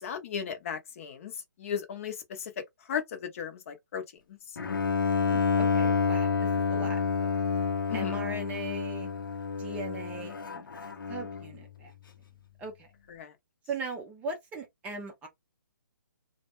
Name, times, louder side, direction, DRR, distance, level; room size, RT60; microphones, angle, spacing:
voice 1, 0.0-4.0 4.3-4.6 7.9-8.2 13.1-13.3, left 7 dB, 40° left, 0.7 m, -36 dB
Bowed string instrument, 4.6-11.6, left 5 dB, 80° left, 0.7 m, -29 dB
voice 2, 5.3-7.3 7.9-9.1 9.6-10.7 11.1-11.9 12.6-12.9 13.7-15.3, right 3 dB, 10° right, 0.5 m, -39 dB
2.3 x 2.1 x 2.9 m
hypercardioid pair, 150°, 11 cm